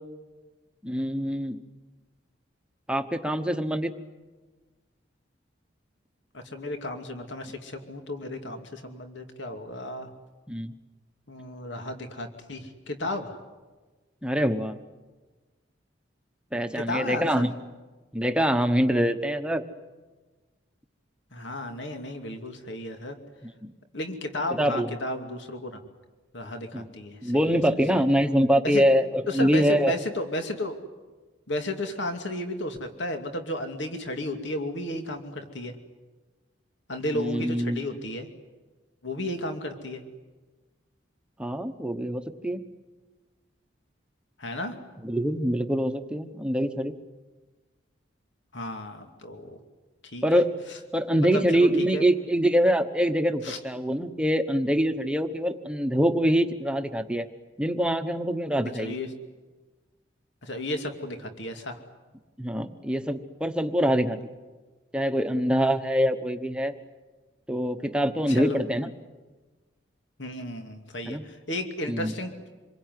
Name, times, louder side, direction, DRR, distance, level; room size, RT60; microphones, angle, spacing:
voice 1, 0.8-1.6 2.9-3.9 10.5-10.7 14.2-14.8 16.5-17.5 18.1-19.6 23.4-23.5 24.5-24.9 26.7-26.9 27.2-29.9 37.1-37.8 41.4-42.6 45.0-46.9 50.2-50.5 50.9-57.3 57.6-59.0 62.4-64.2 64.9-66.7 67.5-68.9 71.0-71.2 71.9-72.1, equal, 5° right, 6 dB, 1.1 m, -24 dB
voice 2, 6.3-10.1 11.3-13.4 16.7-17.5 21.3-23.2 23.9-25.8 26.3-27.5 27.9-28.0 28.6-28.8 29.3-30.8 31.5-35.7 36.9-38.3 39.0-40.0 44.4-44.7 48.5-49.6 50.0-50.4 51.3-52.0 53.4-53.6 58.8-59.1 60.4-61.8 68.3-68.6 70.2-72.5, left 1 dB, 70° left, 5 dB, 2.6 m, -33 dB
27.0 x 22.5 x 9.5 m, 1.3 s
head